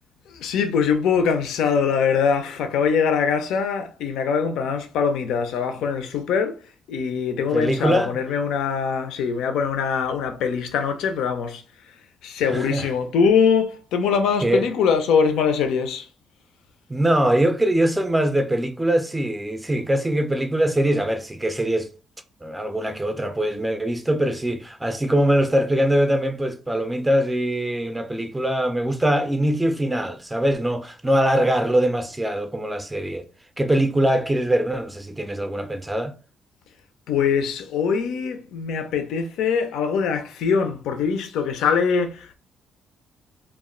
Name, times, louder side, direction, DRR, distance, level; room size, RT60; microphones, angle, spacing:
voice 1, 0.3-6.5 6.9-11.6 12.2-16.1 37.1-42.3, left 6 dB, 85° left, 0.4 m, -22 dB
voice 2, 7.5-8.2 12.4-12.9 14.4-14.6 16.9-21.9 22.4-33.2 33.6-36.1, right 1 dB, 10° right, 0.4 m, -22 dB
2.3 x 2.1 x 3.6 m
cardioid pair, 90°, 0 cm